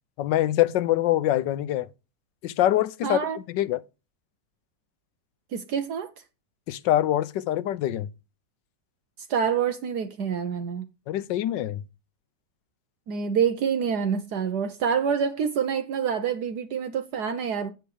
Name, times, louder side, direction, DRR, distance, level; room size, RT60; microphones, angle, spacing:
voice 1, 0.2-1.9 2.4-3.2 3.5-3.8 6.7-8.1 11.1-11.8, left 13 dB, 85° left, 1.4 m, -24 dB
voice 2, 3.0-3.4 5.5-6.1 9.3-10.8 13.1-17.7, right 7 dB, 70° right, 1.4 m, -27 dB
8.0 x 7.9 x 4.9 m
omnidirectional pair, 1.9 m